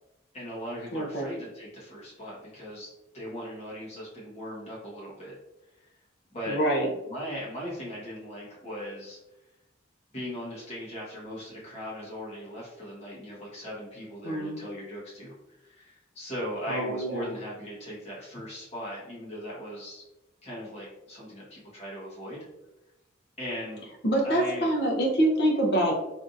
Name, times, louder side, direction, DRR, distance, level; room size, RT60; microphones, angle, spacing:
voice 1, 0.3-5.3 5.7-5.9 6.3-6.6 7.1-9.2 10.1-15.3 15.6-20.0 20.4-22.5 23.4-23.9 24.2-24.7, equal, 35° left, -7 dB, 1.2 m, -39 dB
voice 2, 0.9-1.3 6.5-6.9 14.2-14.6 16.7-17.3 24.0-25.9, right 1 dB, 55° left, -1 dB, 0.7 m, -25 dB
3.5 x 2.6 x 2.4 m, 0.96 s
head